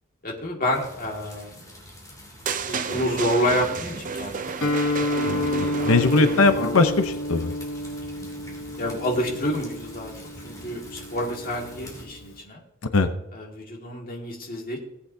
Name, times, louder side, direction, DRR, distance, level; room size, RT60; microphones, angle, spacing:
voice 1, 0.2-1.5 2.6-4.5 5.8-6.8 8.8-10.1 10.4-12.6 13.3-14.8, equal, 45° left, 0 dB, 2.0 m, -28 dB
sound 1, 0.7-12.0, equal, 15° left, 2.8 m, -44 dB
sound 2, 2.5-6.7, right 5 dB, 40° right, 0.5 m, -32 dB
Guitar, 4.6-12.4, left 1 dB, 65° left, 1.3 m, -30 dB
voice 2, 5.3-7.5 12.9-13.1, left 3 dB, 85° left, 8 dB, 0.8 m, -21 dB
17.5 x 8.3 x 2.8 m, 0.84 s
head